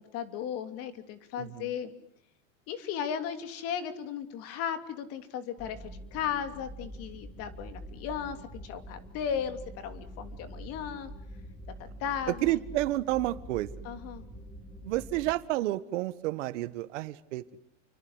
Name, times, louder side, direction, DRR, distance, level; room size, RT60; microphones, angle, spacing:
voice 1, 0.0-1.9 2.7-11.1 11.8-12.6 13.8-14.2, left 8 dB, 35° left, 9 dB, 2.9 m, -36 dB
voice 2, 1.4-1.7 12.3-13.7 14.8-17.6, right 16 dB, 65° right, 12 dB, 1.6 m, -30 dB
sound 1, 5.6-15.3, right 1 dB, 15° left, 3.2 m, -45 dB
30.0 x 24.0 x 8.1 m, 0.69 s
supercardioid pair, 165°, 40 cm